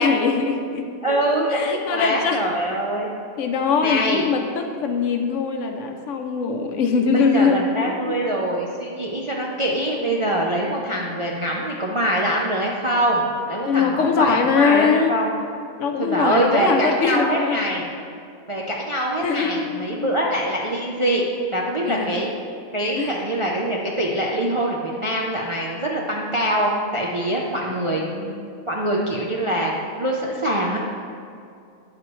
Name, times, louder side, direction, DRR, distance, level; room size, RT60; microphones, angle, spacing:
voice 1, 0.0-1.2 1.5-2.4 3.4-8.2 13.7-15.1 15.8-17.6 19.2-20.2 21.9-22.2 23.0-23.1 27.5-28.4, left 5 dB, 70° left, 4 dB, 0.9 m, -22 dB
voice 2, 1.0-3.1 3.8-4.2 7.1-15.3 16.0-17.9 18.5-21.2 21.5-22.3 22.7-28.1 28.7-30.8, right 1 dB, 40° right, -2 dB, 0.4 m, -24 dB
8.9 x 7.5 x 3.1 m, 2.4 s
omnidirectional pair, 1.4 m